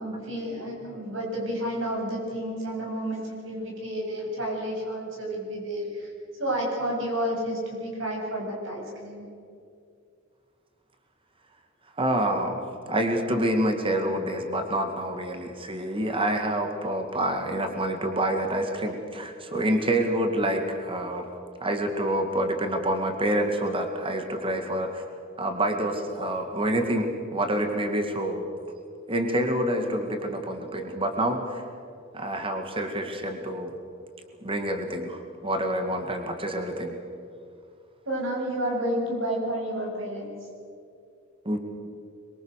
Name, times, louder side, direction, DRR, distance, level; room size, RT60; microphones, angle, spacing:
voice 1, 0.0-6.1 6.4-9.3 38.0-40.4, right 1 dB, 70° right, -1 dB, 7.9 m, -30 dB
voice 2, 12.0-12.6 12.9-21.3 21.6-25.0 25.4-28.4 29.1-31.6 32.1-33.8 34.4-37.0 41.4-41.6, right 1 dB, 25° right, 5 dB, 2.2 m, -27 dB
25.5 x 22.5 x 6.6 m, 2.4 s
head